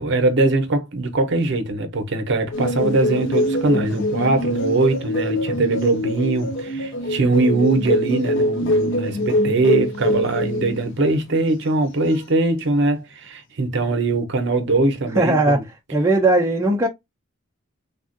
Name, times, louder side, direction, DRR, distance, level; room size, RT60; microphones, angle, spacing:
voice 1, 0.0-15.6, right 2 dB, 55° right, 0.7 m, -21 dB
sound 1, 2.5-10.8 12.1-12.2, left 1 dB, 55° left, 0.5 m, -23 dB
voice 2, 15.2-15.6 15.9-16.9, right 2 dB, 15° right, 0.4 m, -18 dB
3.4 x 2.4 x 2.4 m
head